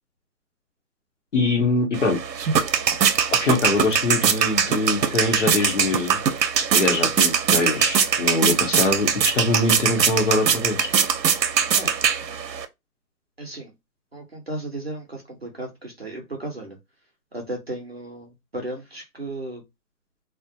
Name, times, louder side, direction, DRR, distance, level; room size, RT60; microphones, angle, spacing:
voice 1, 1.3-2.2 3.3-6.2 6.7-10.9, left 3 dB, 45° left, 0.7 m, -23 dB
sound 1, 1.9-12.7, right 7 dB, 85° right, 0.6 m, -22 dB
voice 2, 13.4-13.7 14.1-16.8 17.3-19.6, right 1 dB, 40° right, 0.6 m, -35 dB
2.3 x 2.1 x 2.6 m
hypercardioid pair, 170°, 49 cm